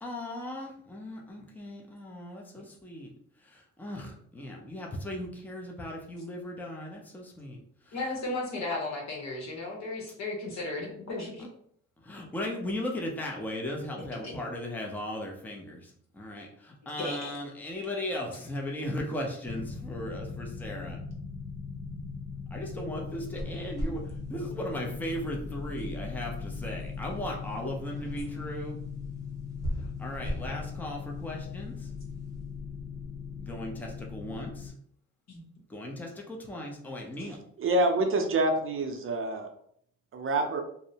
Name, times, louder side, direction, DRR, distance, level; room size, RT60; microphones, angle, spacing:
voice 1, 0.0-3.1 3.4-7.6 7.8-7.9 12.0-21.0 22.5-24.0 24.3-28.8 29.8-31.9 33.3-34.7 35.7-37.4, left 1 dB, 5° left, 0 dB, 0.5 m, -37 dB
voice 2, 7.9-11.4 14.2-14.4 16.8-17.3 35.3-35.4, left 2 dB, 60° left, -1 dB, 1.0 m, -35 dB
sound 1, 19.4-34.7, left 5 dB, 25° left, 0.9 m, -39 dB
sound 2, 23.1-32.4, equal, 10° right, 0.9 m, -41 dB
voice 3, 37.6-39.5 40.1-40.6, right 2 dB, 45° right, 4 dB, 0.5 m, -26 dB
2.6 x 2.0 x 2.7 m, 0.64 s
cardioid pair, 90°, 30 cm